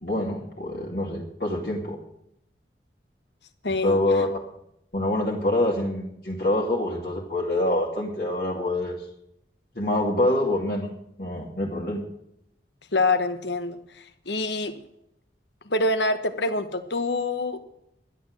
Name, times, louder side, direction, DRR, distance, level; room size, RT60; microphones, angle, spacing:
voice 1, 0.0-2.0 3.8-4.4 4.9-8.9 9.7-10.9 11.2-12.0, left 1 dB, 50° left, -2 dB, 2.3 m, -25 dB
voice 2, 3.6-4.3 12.9-14.7 15.6-17.6, left 2 dB, 75° left, 9 dB, 1.4 m, -26 dB
11.5 x 9.9 x 7.6 m, 0.76 s
head